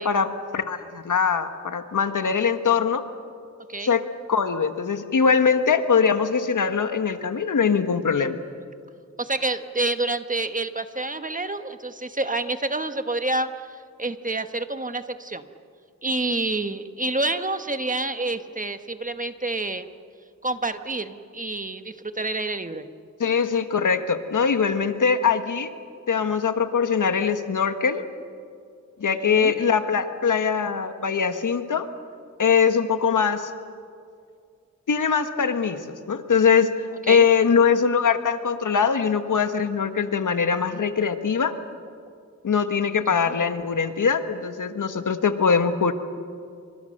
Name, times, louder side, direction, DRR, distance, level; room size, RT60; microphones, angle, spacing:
voice 1, 0.0-3.0 3.8-8.4 23.2-25.7 26.1-28.0 29.0-31.9 32.4-33.5 34.9-41.5 42.4-45.9, left 6 dB, 80° left, 8 dB, 1.5 m, -22 dB
voice 2, 9.2-15.4 16.0-19.9 20.4-22.9 29.1-29.6 37.1-37.2 43.1-43.4, right 2 dB, 25° right, 8 dB, 1.4 m, -28 dB
29.0 x 25.5 x 6.6 m, 2.3 s
wide cardioid pair, 75°, 30 cm